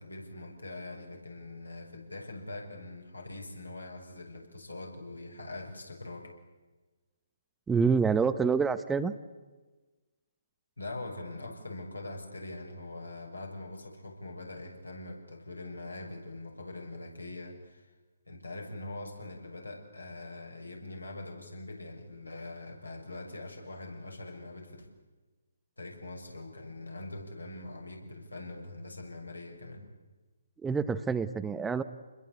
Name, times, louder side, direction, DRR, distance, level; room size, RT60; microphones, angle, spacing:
voice 1, 0.0-6.3 10.8-17.9 18.3-24.9 25.8-29.8, left 2 dB, 85° left, 2 dB, 6.4 m, -43 dB
voice 2, 7.7-9.1 30.6-31.8, right 5 dB, 10° right, 12 dB, 0.8 m, -27 dB
27.5 x 21.0 x 8.3 m, 1.3 s
figure-of-eight pair, 140°, 0 cm